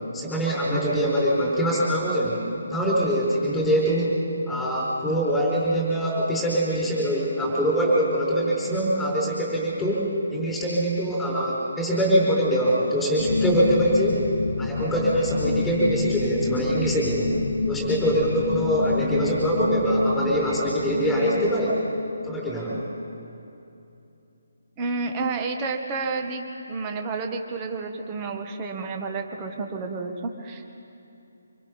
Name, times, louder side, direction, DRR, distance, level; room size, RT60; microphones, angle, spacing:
voice 1, 0.1-2.4 2.7-4.1 4.5-14.2 14.6-17.3 17.7-21.8 22.2-22.8, right 1 dB, 5° left, -5 dB, 4.8 m, -23 dB
sound 1, 13.2-22.6, left 4 dB, 50° left, 1.0 m, -28 dB
voice 2, 24.8-30.7, right 4 dB, 20° right, 4 dB, 1.7 m, -30 dB
26.0 x 25.0 x 5.4 m, 2.8 s
figure-of-eight pair, 145°, 0 cm